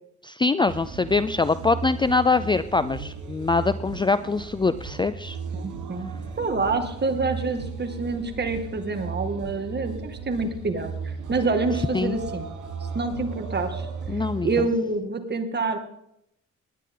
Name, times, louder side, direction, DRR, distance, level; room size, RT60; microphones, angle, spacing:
voice 1, 0.2-5.4 11.9-12.2 14.1-14.5, left 4 dB, 15° left, 14 dB, 0.4 m, -23 dB
sound 1, 0.7-14.7, right 5 dB, 85° right, 3.5 m, -35 dB
voice 2, 5.5-12.5 12.9-13.9 14.4-15.8, right 3 dB, 35° right, 6 dB, 2.2 m, -27 dB
19.5 x 10.0 x 3.9 m, 0.79 s
cardioid pair, 90°, 30 cm